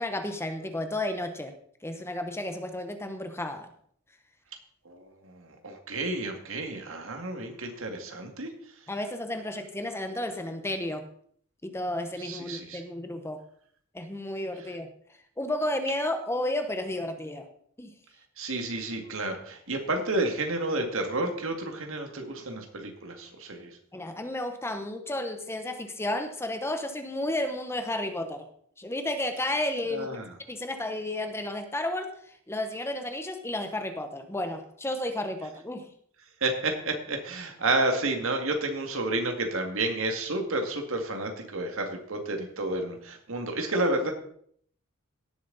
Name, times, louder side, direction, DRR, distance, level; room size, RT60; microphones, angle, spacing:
voice 1, 0.0-1.5 1.8-3.7 8.9-11.1 11.6-13.4 13.9-14.9 15.4-17.5 17.8-17.9 23.9-28.4 28.8-30.1 30.5-32.1 32.5-35.9, left 1 dB, 10° left, 7 dB, 0.9 m, -32 dB
voice 2, 5.2-8.5 12.2-12.8 18.4-23.7 29.9-30.3 36.4-44.1, right 2 dB, 65° right, 4 dB, 2.1 m, -30 dB
17.5 x 7.4 x 4.0 m, 0.63 s
head